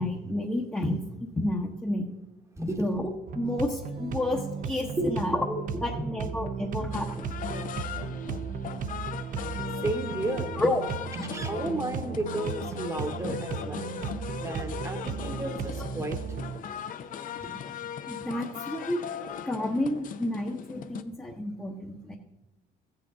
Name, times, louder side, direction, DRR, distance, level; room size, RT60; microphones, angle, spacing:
voice 1, 0.0-2.1 2.6-3.1 3.3-7.2 10.6-10.8 11.2-11.3 13.2-13.4 18.1-19.0 19.5-22.2, left 1 dB, 10° left, 0 dB, 1.0 m, -30 dB
voice 2, 2.6-2.9 5.0-5.4 5.7-6.1 9.8-10.7 11.2-13.9 14.3-16.2 17.4-17.5, right 2 dB, 15° right, 6 dB, 1.1 m, -33 dB
sound 1, 3.3-16.6, right 6 dB, 50° right, 0.7 m, -35 dB
sound 2, 6.9-21.0, left 8 dB, 55° left, 0.7 m, -39 dB
14.5 x 8.0 x 3.7 m, 1.1 s
cardioid pair, 110°, 17 cm